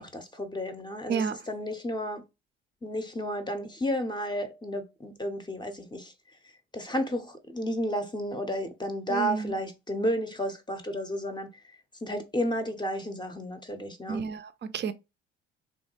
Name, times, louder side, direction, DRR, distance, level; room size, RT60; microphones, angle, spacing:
voice 1, 0.0-2.2 2.8-6.1 6.7-11.5 12.0-14.3, equal, 15° left, 0.7 m, -32 dB
voice 2, 9.1-9.5 14.1-14.9, right 6 dB, 35° right, 0.5 m, -31 dB
3.3 x 2.2 x 2.9 m
hypercardioid pair, 55°, 30 cm